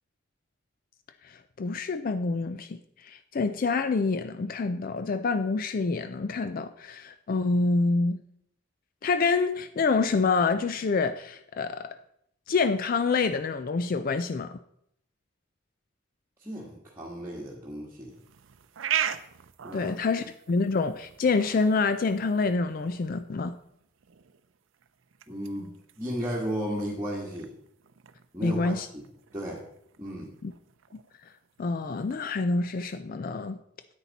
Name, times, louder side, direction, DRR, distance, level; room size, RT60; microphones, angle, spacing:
voice 1, 1.2-8.2 9.0-12.0 12.5-14.6 19.7-23.6 28.4-28.9 30.4-30.5 31.6-33.6, left 4 dB, 45° left, 11 dB, 0.4 m, -27 dB
voice 2, 16.4-18.1 19.6-19.9 25.3-25.7 26.0-27.5 28.3-29.1 29.3-29.6 30.0-30.3, equal, 15° right, -5 dB, 1.5 m, -34 dB
sound 1, 18.1-32.2, right 9 dB, 85° right, 0.6 m, -40 dB
10.0 x 8.4 x 4.1 m, 0.74 s
head